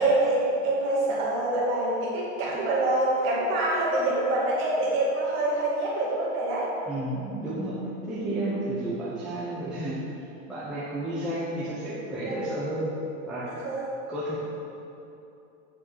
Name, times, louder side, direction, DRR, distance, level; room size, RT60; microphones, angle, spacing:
voice 1, 0.0-6.7 12.2-12.4 13.4-13.9, right 2 dB, 30° right, -6 dB, 2.5 m, -26 dB
voice 2, 6.9-10.0 10.5-12.9 13.2-13.5 14.1-14.4, right 1 dB, ahead, -11 dB, 0.9 m, -31 dB
8.1 x 6.9 x 6.8 m, 2.9 s
supercardioid pair, 180°, 40 cm